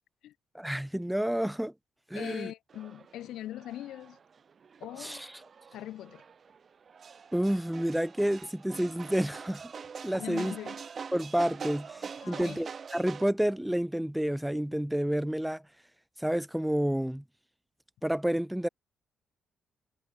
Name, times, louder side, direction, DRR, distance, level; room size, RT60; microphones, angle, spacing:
voice 1, 0.5-1.7 2.1-2.5 5.0-5.3 7.3-9.7 10.0-10.6 11.1-15.6 16.2-17.2 18.0-18.7, equal, 5° right, 2.4 m, -29 dB
voice 2, 2.1-4.2 4.8-5.2 5.7-6.2 10.2-10.8 12.2-12.7, left 13 dB, 80° left, 3.8 m, -41 dB
sound 1, 2.7-13.3, right 6 dB, 45° right, 7.1 m, -44 dB
cardioid pair, 90°, 0 cm